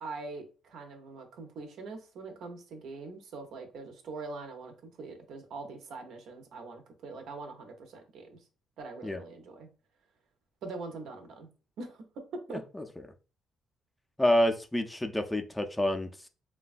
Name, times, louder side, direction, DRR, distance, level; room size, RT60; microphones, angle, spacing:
voice 1, 0.0-8.4 8.8-9.7 10.6-11.5 11.8-12.0 12.5-12.6, right 3 dB, 80° right, 5 dB, 0.6 m, -43 dB
voice 2, 14.2-16.3, left 1 dB, 10° left, 5 dB, 0.4 m, -28 dB
3.2 x 2.2 x 2.4 m, 0.34 s
cardioid pair, 90°, 0 cm